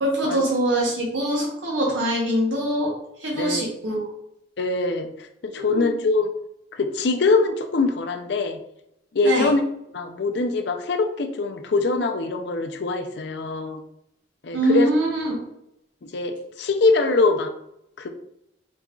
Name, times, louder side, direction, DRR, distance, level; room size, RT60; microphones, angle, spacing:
voice 1, 0.0-2.9 3.2-4.1 5.6-5.9 9.2-9.5 14.5-15.4, right 1 dB, 85° right, -3 dB, 1.0 m, -23 dB
voice 2, 3.3-3.6 4.6-5.1 5.4-6.3 6.7-8.6 9.1-9.6 9.9-13.8 14.4-14.9 16.0-17.5 18.0-18.1, left 3 dB, 65° left, 6 dB, 0.5 m, -23 dB
4.0 x 3.6 x 2.3 m, 0.78 s
head